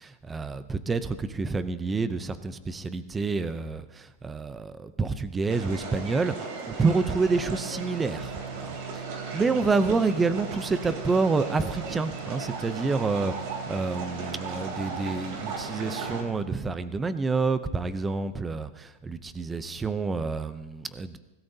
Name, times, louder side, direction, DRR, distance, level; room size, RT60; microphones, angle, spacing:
voice 1, 0.0-8.3 8.7-9.0 9.3-13.3 13.7-21.2, right 4 dB, 10° right, 12 dB, 0.5 m, -28 dB
sound 1, 5.5-16.2, right 4 dB, 45° right, 3.2 m, -37 dB
sound 2, 7.2-16.7, right 6 dB, 80° right, 0.9 m, -41 dB
25.0 x 17.5 x 2.7 m, 1.1 s
supercardioid pair, 175°, 0 cm